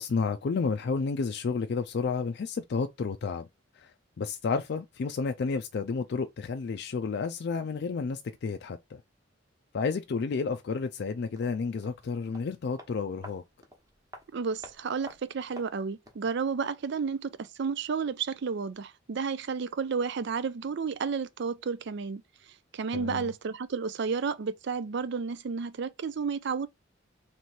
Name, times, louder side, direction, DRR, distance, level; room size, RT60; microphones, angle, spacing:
voice 1, 0.0-3.5 3.8-3.9 4.2-9.0 9.7-13.4 22.9-23.3, left 5 dB, 60° left, 0.4 m, -31 dB
sound 1, 11.3-16.3 16.6-16.7, equal, 20° right, 1.1 m, -51 dB
voice 2, 14.3-22.2 22.7-26.7, right 5 dB, 65° right, 0.5 m, -32 dB
3.3 x 3.1 x 4.1 m
head